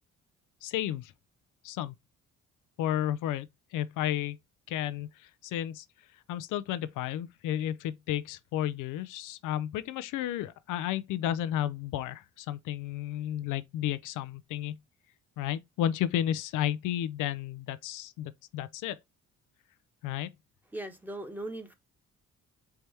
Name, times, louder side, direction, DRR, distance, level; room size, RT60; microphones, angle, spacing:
voice 1, 0.6-1.1 1.6-2.0 2.8-4.4 4.7-5.9 6.3-14.8 15.4-19.0 20.0-20.3, left 11 dB, 85° left, 0.5 m, -32 dB
voice 2, 20.7-21.7, right 1 dB, 5° right, 1.2 m, -38 dB
4.6 x 3.3 x 2.7 m
cardioid pair, 90°, 30 cm